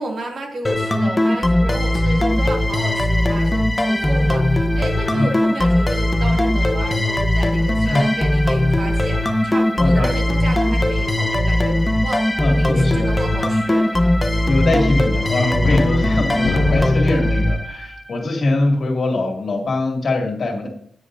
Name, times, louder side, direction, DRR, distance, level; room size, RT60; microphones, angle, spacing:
voice 1, 0.0-13.9, right 2 dB, 55° right, 1 dB, 2.4 m, -32 dB
sound 1, 0.6-18.2, left 1 dB, 15° left, 0.9 m, -19 dB
sound 2, 2.3-5.1 5.4-5.7 6.4-6.8 7.1-9.5 10.0-10.7 12.8-12.9 13.5-13.6 14.0-17.0, left 7 dB, 80° left, 0.4 m, -31 dB
voice 2, 9.8-10.1 12.4-13.1 14.5-20.7, left 2 dB, 50° left, 2 dB, 2.4 m, -22 dB
10.0 x 9.8 x 2.7 m, 0.66 s
cardioid pair, 95°, 0 cm